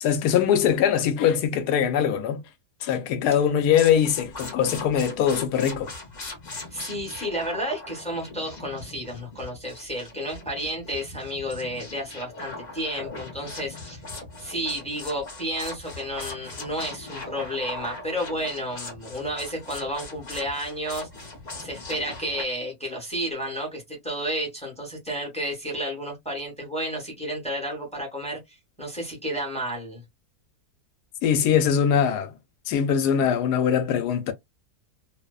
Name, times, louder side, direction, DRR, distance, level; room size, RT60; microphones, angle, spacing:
voice 1, 0.0-2.4 2.8-5.9 31.2-32.3 32.7-34.3, left 8 dB, 75° left, 1.1 m, -22 dB
sound 1, 3.7-22.4, left 2 dB, 40° left, 0.6 m, -40 dB
voice 2, 6.7-14.0 14.4-21.1 21.6-30.0, equal, 5° left, 0.7 m, -31 dB
2.7 x 2.0 x 2.2 m
omnidirectional pair, 1.7 m